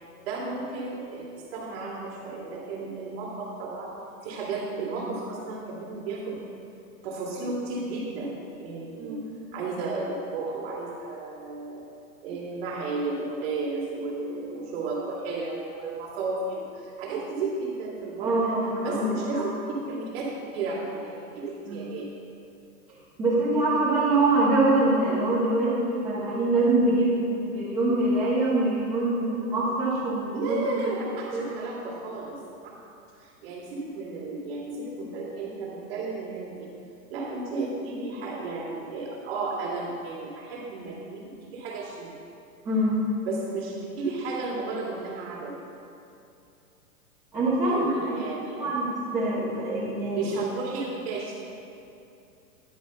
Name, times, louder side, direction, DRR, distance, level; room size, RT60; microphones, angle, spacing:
voice 1, 0.2-3.9 4.2-6.5 7.0-9.2 9.5-11.9 12.2-18.5 18.8-19.5 19.9-20.2 20.5-22.1 30.3-32.4 33.2-36.7 37.1-42.1 43.2-45.5 47.6-48.7 50.2-51.4, right 3 dB, 40° right, -5 dB, 2.4 m, -33 dB
voice 2, 18.2-19.4 21.7-21.9 23.2-30.8 31.3-31.6 42.6-42.9 47.3-48.1 48.6-50.3, right 2 dB, 10° right, -13 dB, 1.4 m, -24 dB
10.5 x 4.9 x 6.9 m, 2.7 s
hypercardioid pair, 170°, 45 cm